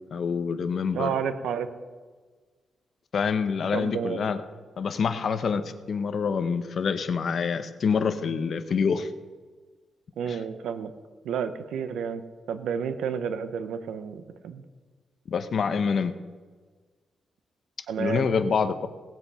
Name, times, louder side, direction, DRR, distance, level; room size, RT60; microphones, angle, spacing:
voice 1, 0.1-1.1 3.1-4.4 4.8-9.1 10.2-10.4 15.3-16.1 18.0-18.9, left 6 dB, 55° left, 10 dB, 1.0 m, -26 dB
voice 2, 0.9-1.7 3.7-4.2 10.2-10.9 11.2-14.6 17.9-18.3, right 7 dB, 90° right, 11 dB, 0.9 m, -30 dB
18.0 x 7.6 x 5.7 m, 1.4 s
cardioid pair, 100°, 0 cm